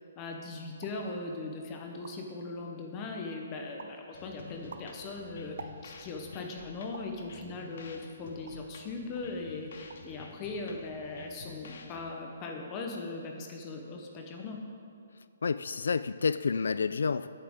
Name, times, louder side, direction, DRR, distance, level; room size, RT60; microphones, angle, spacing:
voice 1, 0.2-14.6, left 3 dB, 20° left, 2 dB, 0.7 m, -39 dB
sound 1, 0.8-1.1 1.6-1.7 1.9-2.4 2.9-3.3 3.8-4.1 4.5-6.2 6.9-7.2 7.8-8.7 9.2-9.4 9.7-10.2 10.4-10.9, right 5 dB, 65° right, 0.6 m, -49 dB
sound 2, 4.1-12.1, left 5 dB, 50° left, 0.9 m, -50 dB
voice 2, 15.4-17.3, left 5 dB, 90° left, 14 dB, 0.3 m, -29 dB
14.0 x 8.8 x 3.6 m, 2.3 s
hypercardioid pair, 175°, 0 cm